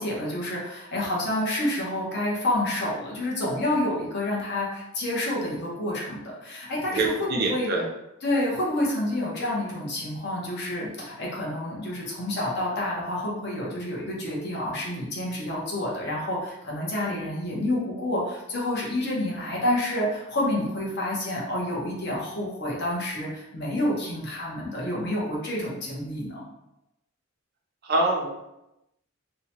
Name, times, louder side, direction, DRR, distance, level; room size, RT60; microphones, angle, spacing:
voice 1, 0.0-7.7 8.2-26.4, left 1 dB, 50° left, -4 dB, 0.7 m, -28 dB
voice 2, 6.9-7.8 27.8-28.3, right 2 dB, 45° right, -1 dB, 0.5 m, -25 dB
2.7 x 2.1 x 2.8 m, 0.91 s
head